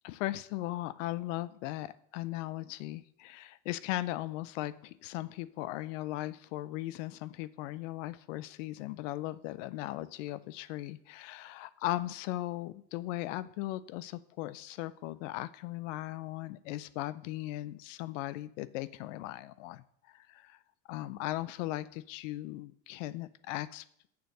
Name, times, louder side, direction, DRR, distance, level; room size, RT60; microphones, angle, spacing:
voice 1, 0.0-20.6 20.9-23.8, left 16 dB, 80° left, 17 dB, 0.6 m, -38 dB
6.9 x 6.5 x 6.6 m, 0.69 s
supercardioid pair, 100°, 37 cm